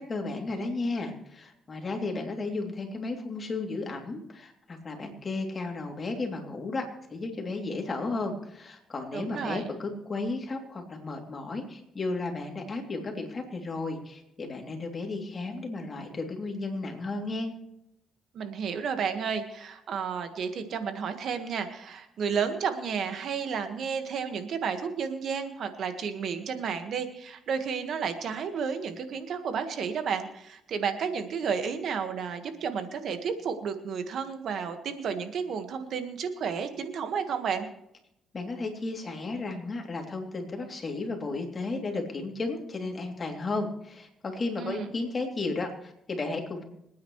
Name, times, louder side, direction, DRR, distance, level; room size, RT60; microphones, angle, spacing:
voice 1, 0.0-17.5 38.3-46.6, left 3 dB, 35° left, 2 dB, 2.9 m, -34 dB
voice 2, 9.1-9.7 18.3-37.7 44.6-44.9, right 6 dB, 65° right, 8 dB, 1.6 m, -32 dB
25.5 x 9.4 x 3.2 m, 0.80 s
cardioid pair, 90°, 0 cm